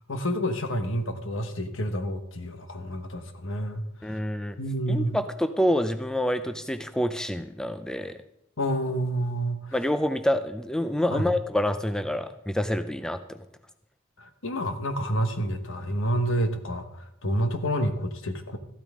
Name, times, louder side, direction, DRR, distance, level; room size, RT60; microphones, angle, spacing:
voice 1, 0.1-4.2 4.6-5.2 8.6-9.8 11.1-11.2 14.2-18.6, equal, 65° left, 7 dB, 1.3 m, -29 dB
voice 2, 4.0-4.6 4.9-8.2 9.7-13.4, left 1 dB, 5° left, 9 dB, 0.4 m, -27 dB
14.0 x 12.5 x 3.7 m, 0.78 s
head